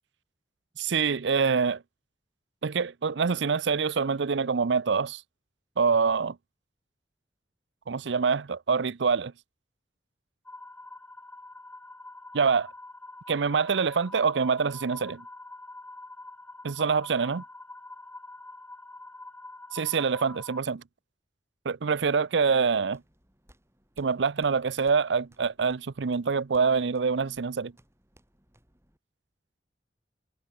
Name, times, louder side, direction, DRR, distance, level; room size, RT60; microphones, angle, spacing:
voice 1, 0.8-1.8 2.6-5.2 5.8-6.4 7.9-9.3 12.3-12.7 13.3-15.2 16.6-17.4 19.7-20.8 21.6-23.0 24.0-27.7, right 5 dB, 85° right, 0.6 m, -25 dB
sound 1, 10.5-20.6, left 2 dB, 10° left, 5.3 m, -46 dB
sound 2, 22.7-29.0, right 1 dB, 15° right, 7.5 m, -63 dB
head